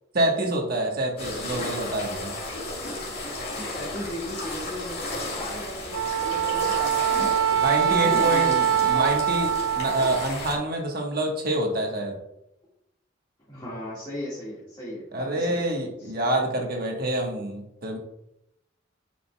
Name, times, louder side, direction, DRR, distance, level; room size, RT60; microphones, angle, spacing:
voice 1, 0.1-2.3 7.5-9.5 9.7-12.2 15.1-18.0, right 1 dB, 45° right, 1 dB, 1.3 m, -27 dB
sound 1, 1.2-10.5, left 2 dB, 50° left, 2.1 m, -34 dB
voice 2, 3.7-8.5 8.8-9.1 13.5-15.7 16.0-16.1, left 1 dB, 20° left, -8 dB, 1.8 m, -36 dB
Wind instrument woodwind instrument, 5.9-10.3, right 9 dB, 85° right, 0.4 m, -23 dB
9.9 x 5.1 x 2.3 m, 0.84 s
head